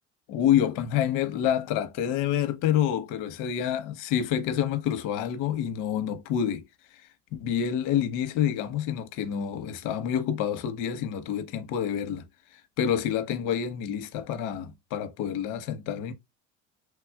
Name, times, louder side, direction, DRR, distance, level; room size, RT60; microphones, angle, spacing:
voice 1, 0.3-6.6 7.3-12.2 12.5-16.1, left 9 dB, 70° left, 0.9 m, -28 dB
3.2 x 2.3 x 3.4 m
supercardioid pair, 115°, 32 cm